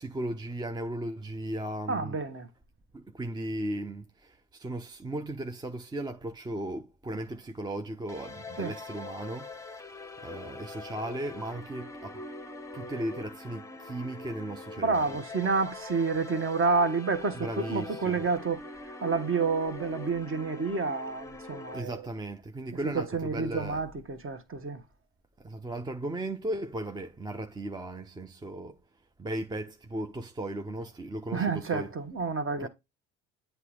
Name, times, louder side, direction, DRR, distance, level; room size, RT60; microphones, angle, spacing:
voice 1, 0.0-2.2 2.9-9.5 10.2-12.3 12.7-15.2 17.3-18.3 21.7-23.8 25.4-28.8 29.2-31.9 32.6-32.7, right 1 dB, 10° right, 0.5 m, -36 dB
voice 2, 1.9-2.5 8.6-8.7 14.8-18.6 19.0-22.0 22.8-24.8 31.3-32.7, right 4 dB, 30° right, 1.1 m, -29 dB
sound 1, 8.1-21.8, left 3 dB, 5° left, 0.9 m, -43 dB
8.3 x 3.1 x 4.8 m
hypercardioid pair, 65°, 41 cm